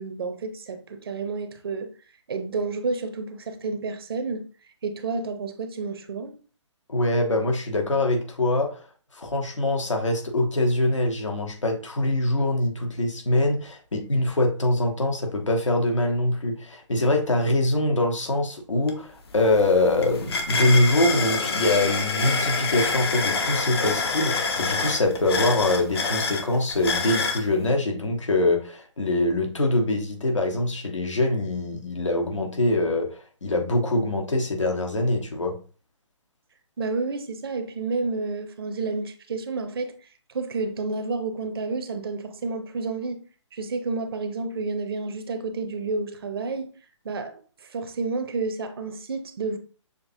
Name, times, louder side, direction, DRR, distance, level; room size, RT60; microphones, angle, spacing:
voice 1, 0.0-1.9 2.3-4.5 4.8-6.3 36.8-40.0 40.3-43.2 43.5-46.7 47.0-47.4 47.7-49.6, right 3 dB, 50° right, 0.7 m, -30 dB
voice 2, 6.9-8.8 9.1-35.6, left 2 dB, 75° left, 1.2 m, -24 dB
sound 1, 18.9-19.0 19.3-27.4, left 4 dB, 55° left, 0.8 m, -27 dB
6.6 x 2.8 x 2.7 m
figure-of-eight pair, 135°, 16 cm